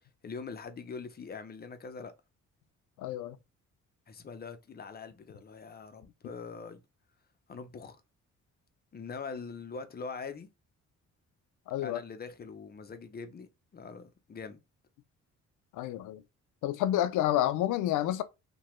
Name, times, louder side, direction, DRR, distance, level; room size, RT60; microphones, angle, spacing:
voice 1, 0.2-2.1 4.1-6.8 7.5-8.0 8.9-10.5 11.8-14.6, left 5 dB, 30° left, 0.5 m, -43 dB
voice 2, 3.0-3.4 11.7-12.0 15.7-16.2 16.6-18.2, left 13 dB, 80° left, 0.5 m, -29 dB
2.9 x 2.2 x 3.0 m
cardioid pair, 90°, 30 cm